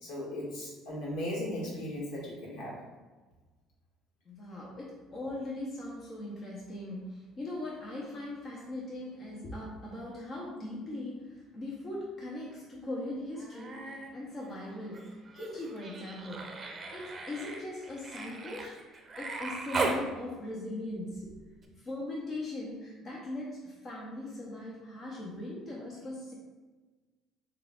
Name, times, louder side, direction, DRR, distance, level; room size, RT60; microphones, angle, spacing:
voice 1, 0.0-2.9, left 1 dB, 75° left, -4 dB, 1.4 m, -37 dB
voice 2, 4.3-16.6 16.9-18.7 19.2-21.4 21.8-26.3, left 1 dB, 40° left, -4 dB, 0.9 m, -40 dB
Human voice, 13.3-14.1 14.4-20.0 21.6-21.7, right 3 dB, 35° right, 0.6 m, -38 dB
6.4 x 2.4 x 2.5 m, 1.3 s
hypercardioid pair, 65°, 0 cm